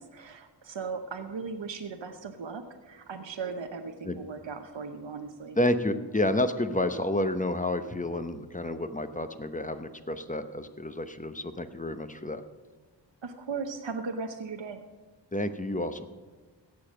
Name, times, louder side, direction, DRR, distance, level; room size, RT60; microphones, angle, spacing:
voice 1, 0.0-5.6 13.2-14.8, right 5 dB, 75° right, 6 dB, 0.9 m, -37 dB
voice 2, 5.6-12.4 15.3-16.1, left 1 dB, 15° left, 9 dB, 0.9 m, -30 dB
16.5 x 6.9 x 6.3 m, 1.3 s
wide cardioid pair, 65°, 44 cm